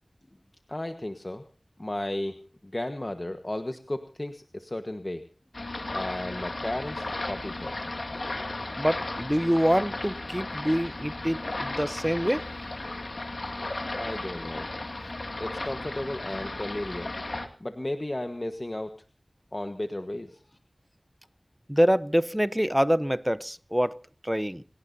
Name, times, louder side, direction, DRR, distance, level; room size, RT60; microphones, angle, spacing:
voice 1, 0.7-1.4 1.8-2.4 2.6-5.2 5.9-7.8 13.9-14.7 15.4-17.1 17.6-19.0 19.5-20.4, left 1 dB, 35° left, 1.3 m, -34 dB
sound 1, 5.5-17.5, left 2 dB, 60° left, 2.3 m, -35 dB
voice 2, 8.8-12.5 21.7-24.6, equal, 5° right, 0.8 m, -26 dB
28.5 x 17.5 x 2.7 m
wide cardioid pair, 45°, 0 cm